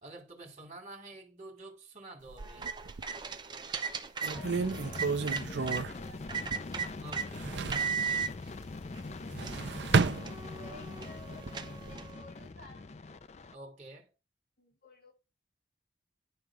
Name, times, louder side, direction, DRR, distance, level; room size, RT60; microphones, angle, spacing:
voice 1, 0.0-2.7 7.0-8.3 13.5-14.1, right 2 dB, 40° right, 2.7 m, -49 dB
sound 1, 2.3-3.2 3.8-3.9 4.2-6.9 7.1-8.0 9.1-10.9 11.3-12.0, right 4 dB, 75° right, 0.5 m, -32 dB
sound 2, 2.4-5.8 6.3-7.3 7.7-8.3 9.0-9.1 9.4-12.2, right 6 dB, 25° right, 0.6 m, -37 dB
voice 2, 4.2-6.9 9.4-10.0 10.6-12.9 14.6-15.1, left 1 dB, 60° left, 4.4 m, -55 dB
sound 3, 4.4-13.5, left 3 dB, 35° left, 0.4 m, -43 dB
11.0 x 3.6 x 4.8 m
head